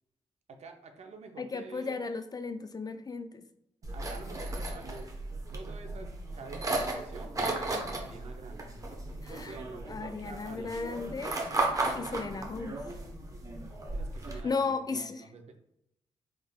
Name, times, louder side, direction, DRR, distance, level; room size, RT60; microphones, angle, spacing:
voice 1, 0.5-2.0 3.9-5.1 5.5-8.7 9.3-10.8 13.9-15.6, right 4 dB, 60° right, 5 dB, 0.6 m, -48 dB
voice 2, 1.4-3.4 9.2-9.6 9.9-11.4 11.9-12.8 14.4-15.2, left 4 dB, 30° left, 9 dB, 0.3 m, -35 dB
sound 1, 3.8-14.4, right 2 dB, 25° right, 0.9 m, -35 dB
3.5 x 3.4 x 2.3 m, 0.77 s
cardioid pair, 60°, 13 cm